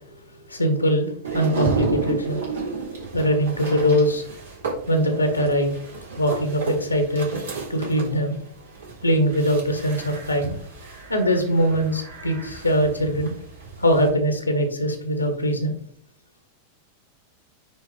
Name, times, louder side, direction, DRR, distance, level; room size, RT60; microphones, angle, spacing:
voice 1, 0.5-2.6 3.1-4.2 4.9-5.7 6.2-7.4 7.7-8.4 9.0-10.5 11.1-13.3 13.8-15.7, equal, 85° left, 6 dB, 1.7 m, -22 dB
sound 1, 1.2-14.1, right 4 dB, 65° right, 3.5 m, -32 dB
9.6 x 4.0 x 5.1 m, 0.62 s
figure-of-eight pair, 90°, 0 cm